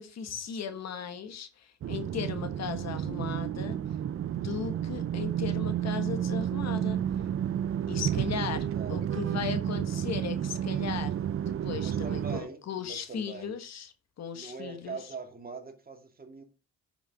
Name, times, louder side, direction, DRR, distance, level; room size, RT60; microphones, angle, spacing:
voice 1, 0.0-3.8 4.3-7.0 7.9-15.0, left 7 dB, 60° left, 1.4 m, -37 dB
sound 1, 1.8-12.4, right 10 dB, 50° right, 0.6 m, -31 dB
voice 2, 8.0-8.4 8.7-9.0 11.7-13.6 14.3-16.4, right 4 dB, 30° right, 2.2 m, -43 dB
9.8 x 6.1 x 3.5 m
cardioid pair, 90°, 30 cm